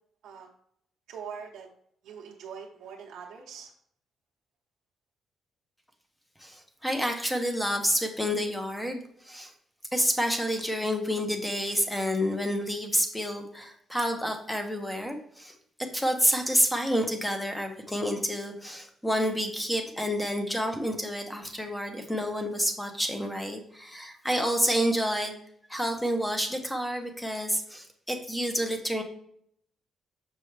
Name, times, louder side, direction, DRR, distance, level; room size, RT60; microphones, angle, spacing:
voice 1, 1.1-1.7 2.0-3.7, right 6 dB, 85° right, -2 dB, 0.9 m, -42 dB
voice 2, 6.4-9.0 9.2-9.5 9.9-15.5 15.9-25.3 25.7-29.0, equal, 5° left, 5 dB, 0.9 m, -29 dB
6.8 x 4.9 x 3.3 m, 0.67 s
cardioid pair, 150°, 0 cm